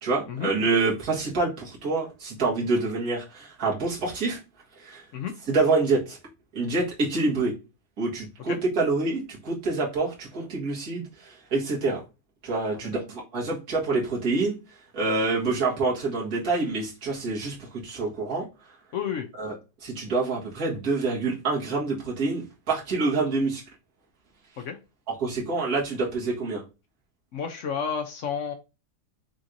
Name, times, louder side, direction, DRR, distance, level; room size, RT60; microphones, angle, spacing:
voice 1, 0.0-4.4 4.8-5.0 5.5-6.2 6.5-7.5 8.0-12.0 12.4-14.6 14.9-17.6 17.8-18.4 19.4-19.5 19.8-23.6 25.2-26.6, right 3 dB, 65° right, -3 dB, 2.1 m, -26 dB
voice 2, 18.9-19.3 24.6-24.8 27.3-28.5, left 7 dB, 65° left, 5 dB, 0.8 m, -31 dB
6.2 x 3.0 x 2.6 m, 0.28 s
omnidirectional pair, 1.8 m